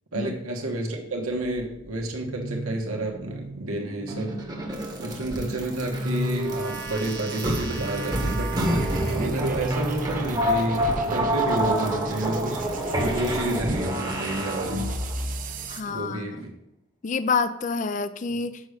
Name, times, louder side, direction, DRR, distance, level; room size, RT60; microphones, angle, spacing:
voice 1, 0.1-4.4 5.0-12.7 13.0-14.9 15.8-16.5 18.3-18.4, right 1 dB, 90° right, 1 dB, 1.3 m, -30 dB
sound 1, 1.3-16.0, right 4 dB, 40° right, 0.7 m, -41 dB
sound 2, 4.1-15.3, right 1 dB, 20° right, 1.0 m, -27 dB
voice 2, 15.7-16.2 17.0-18.6, left 4 dB, 35° left, 13 dB, 0.4 m, -27 dB
6.2 x 5.0 x 6.6 m, 0.84 s
head